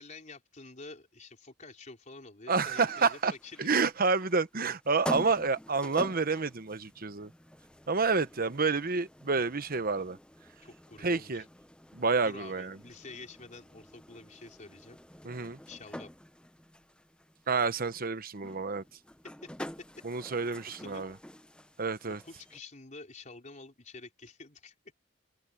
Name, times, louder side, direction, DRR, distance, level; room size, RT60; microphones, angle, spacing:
voice 1, 0.0-3.7 8.4-8.5 10.6-11.5 12.2-15.0 15.7-16.1 19.4-19.7 20.2-20.3 20.8-21.1 22.1-24.7, left 3 dB, 40° left, 4.0 m, -48 dB
voice 2, 2.5-3.3 3.6-7.3 7.9-10.2 11.0-11.4 11.9-12.8 15.2-15.6 17.5-18.8 20.0-21.1 21.8-22.2, right 4 dB, 50° right, 1.1 m, -29 dB
sound 1, 2.9-22.6, left 1 dB, 5° left, 0.9 m, -47 dB
open air
head